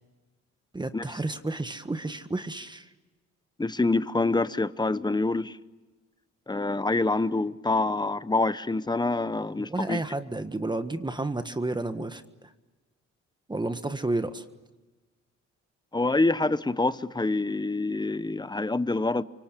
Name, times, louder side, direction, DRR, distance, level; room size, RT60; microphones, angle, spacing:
voice 1, 0.7-2.9 9.6-12.5 13.5-14.4, right 2 dB, 15° right, 1.6 m, -31 dB
voice 2, 3.6-5.6 6.5-10.0 15.9-19.2, left 2 dB, 15° left, 0.9 m, -26 dB
28.5 x 24.5 x 8.4 m
cardioid pair, 90°, 30 cm